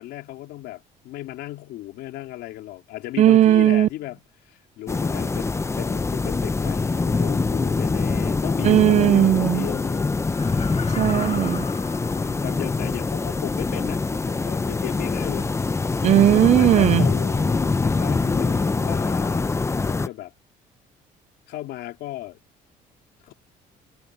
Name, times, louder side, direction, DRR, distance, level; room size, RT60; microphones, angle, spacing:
voice 1, 0.0-10.1 12.1-15.6 16.4-19.5 19.8-20.3 21.5-22.4 23.2-23.3, left 15 dB, 85° left, 3.7 m, -35 dB
voice 2, 3.2-3.9 8.6-9.7 11.0-11.7 16.0-17.0, right 12 dB, 45° right, 0.4 m, -17 dB
sound 1, 4.9-20.1, left 3 dB, 15° left, 0.7 m, -24 dB
Laughter, 10.2-12.9 13.3-13.4, left 6 dB, 35° left, 1.5 m, -38 dB
cardioid pair, 110°, 17 cm